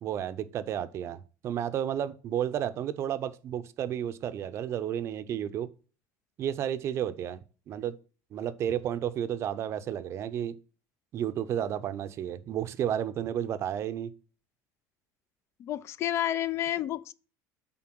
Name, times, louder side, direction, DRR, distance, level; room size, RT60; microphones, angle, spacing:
voice 1, 0.0-5.7 6.4-7.9 8.3-10.5 11.1-14.1, right 10 dB, 40° right, 0.6 m, -32 dB
voice 2, 15.6-17.1, left 12 dB, 40° left, 0.3 m, -30 dB
7.7 x 3.9 x 6.0 m
cardioid pair, 140°, 7 cm